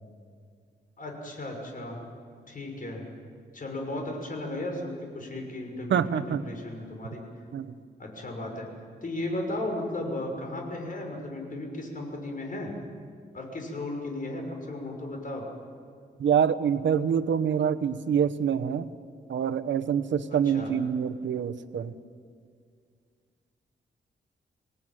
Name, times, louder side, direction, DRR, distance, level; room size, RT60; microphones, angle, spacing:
voice 1, 1.0-2.0 2.5-3.1 3.5-7.2 8.0-8.7 9.0-12.7 13.3-15.4 20.3-20.7, left 1 dB, 50° left, 2 dB, 6.2 m, -35 dB
voice 2, 5.9-6.4 7.5-7.7 16.2-18.8 19.3-21.9, right 8 dB, 85° right, 9 dB, 1.0 m, -26 dB
27.0 x 19.0 x 9.2 m, 2.2 s
wide cardioid pair, 95°, 19 cm